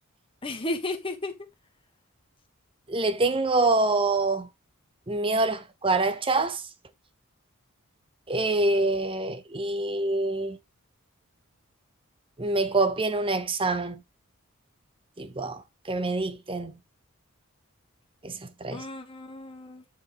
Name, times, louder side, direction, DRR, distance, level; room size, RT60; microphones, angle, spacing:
voice 1, 0.4-1.3 18.7-19.8, left 2 dB, 25° left, 1.4 m, -33 dB
voice 2, 2.9-4.5 5.1-6.6 8.3-10.6 12.4-14.0 15.2-15.6 15.9-16.7 18.2-18.8, right 2 dB, 25° right, 0.8 m, -26 dB
8.8 x 5.6 x 3.5 m
head